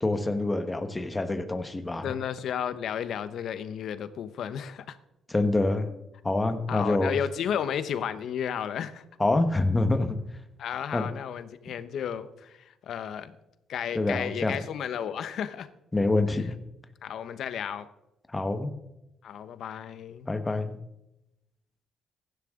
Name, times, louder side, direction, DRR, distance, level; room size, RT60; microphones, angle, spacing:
voice 1, 0.0-2.1 5.3-5.9 6.2-7.2 9.2-10.2 10.9-11.1 13.9-14.6 15.9-16.5 18.3-18.7 20.3-20.8, left 2 dB, 20° left, 8 dB, 1.3 m, -26 dB
voice 2, 2.0-5.0 6.7-9.0 10.6-13.3 13.7-15.7 16.3-16.5 17.0-17.9 19.2-20.3, left 8 dB, 70° left, 12 dB, 0.9 m, -33 dB
16.0 x 11.5 x 3.8 m, 0.89 s
cardioid pair, 90°, 0 cm